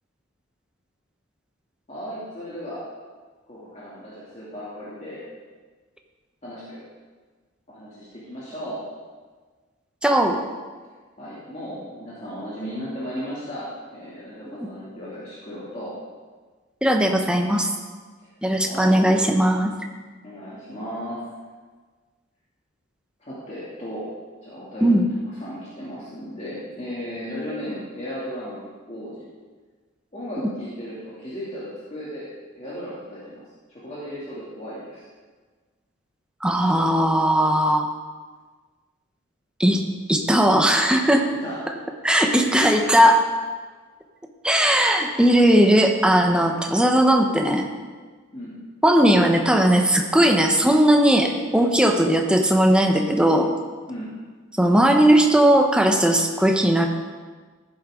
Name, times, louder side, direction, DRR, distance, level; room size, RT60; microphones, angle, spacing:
voice 1, 1.9-2.9 3.5-5.2 6.4-6.8 7.7-8.8 11.2-15.9 18.6-19.0 20.2-21.2 23.2-24.1 24.4-24.9 25.4-28.6 28.9-29.3 30.1-32.3 32.5-33.4 33.7-35.1 41.3-41.6 48.3-48.6 53.9-54.1, equal, 35° left, -9 dB, 2.7 m, -35 dB
voice 2, 10.0-10.4 14.6-14.7 16.8-17.7 18.4-19.7 24.8-25.1 36.4-37.9 39.6-39.8 40.1-41.3 42.0-43.2 44.4-47.7 48.8-53.5 54.6-56.9, right 1 dB, 5° right, 3 dB, 0.9 m, -18 dB
15.0 x 11.0 x 3.8 m, 1.4 s
head